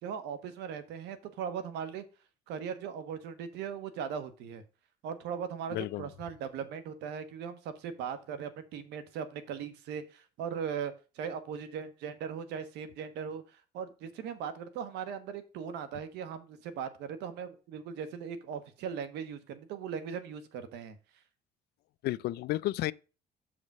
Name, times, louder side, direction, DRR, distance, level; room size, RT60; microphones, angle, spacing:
voice 1, 0.0-2.0 2.5-4.6 5.0-21.0, right 7 dB, 85° right, 1.2 m, -39 dB
voice 2, 5.7-6.1 22.0-22.9, left 16 dB, 70° left, 0.4 m, -32 dB
7.3 x 5.0 x 5.4 m
cardioid pair, 110°, 17 cm